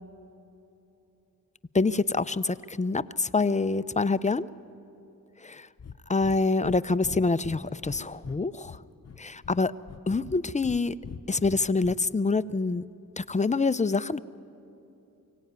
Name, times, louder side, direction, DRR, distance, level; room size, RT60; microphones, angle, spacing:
voice 1, 1.7-4.5 5.4-5.7 6.1-8.8 9.2-9.7 10.1-11.0 11.3-12.8 13.2-14.2, left 3 dB, 20° left, 15 dB, 0.6 m, -26 dB
Breathing, 5.8-6.0 6.2-6.4 6.6-6.8 7.0-8.4 8.6-9.6 9.9-10.8 11.0-11.9, left 6 dB, 45° left, 0.9 m, -42 dB
23.5 x 17.0 x 9.5 m, 2.9 s
cardioid pair, 45°, 36 cm